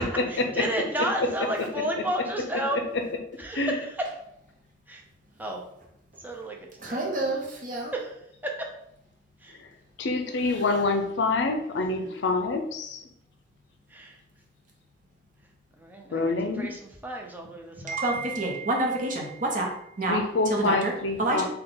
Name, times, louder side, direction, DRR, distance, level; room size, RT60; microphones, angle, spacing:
voice 1, 0.3-2.8 3.4-3.9 4.9-5.0 5.4-5.6 6.2-7.2 7.9-8.1 8.4-8.7 9.4-9.6 13.9-14.2 15.8-16.2 16.6-18.1, right 1 dB, 10° right, 0 dB, 0.6 m, -32 dB
voice 2, 6.8-7.9 17.8-19.7 20.0-20.2 20.5-20.9 21.2-21.4, right 2 dB, 45° right, 0 dB, 0.8 m, -27 dB
voice 3, 10.0-13.0 16.1-16.7 20.1-21.4, left 3 dB, 70° left, 5 dB, 0.5 m, -26 dB
3.6 x 2.3 x 3.9 m, 0.74 s
head